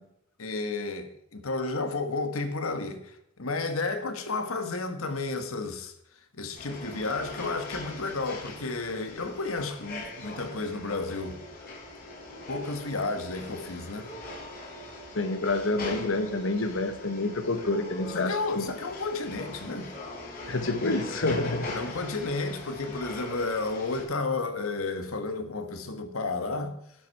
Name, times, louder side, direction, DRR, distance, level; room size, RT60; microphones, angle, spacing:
voice 1, 0.4-5.9 6.3-11.4 12.5-14.1 18.1-19.9 21.7-26.8, left 3 dB, 85° left, 1.4 m, -32 dB
sound 1, 6.5-24.0, left 2 dB, 45° left, 4.2 m, -41 dB
voice 2, 15.1-18.6 20.5-21.8, left 2 dB, 65° left, 1.2 m, -28 dB
11.5 x 8.3 x 4.6 m
head